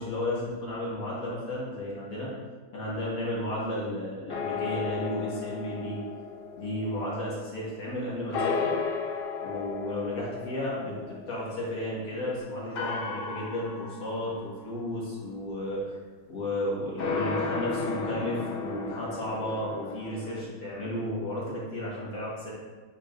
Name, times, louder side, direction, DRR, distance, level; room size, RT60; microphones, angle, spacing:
voice 1, 0.0-2.3 2.7-6.0 6.6-8.7 9.4-16.0 16.3-22.5, left 1 dB, 55° left, -6 dB, 2.1 m, -33 dB
sound 1, 4.3-7.9 8.3-12.1 12.7-14.6 17.0-20.4, left 5 dB, 90° left, 0.4 m, -34 dB
8.1 x 4.9 x 2.6 m, 1.4 s
omnidirectional pair, 1.9 m